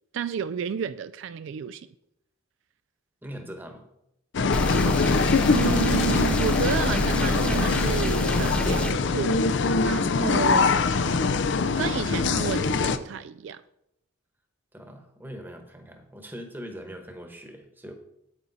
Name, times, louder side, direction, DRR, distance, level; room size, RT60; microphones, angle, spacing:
voice 1, 0.1-1.9 5.5-9.4 9.8-10.7 11.8-13.6, right 7 dB, 65° right, 0.3 m, -31 dB
voice 2, 3.2-3.8 14.7-17.9, equal, 10° right, 1.1 m, -41 dB
sound 1, 4.3-13.0, left 4 dB, 60° left, 0.5 m, -23 dB
sound 2, 4.5-8.9, left 1 dB, 5° left, 0.5 m, -27 dB
8.7 x 8.5 x 4.0 m
head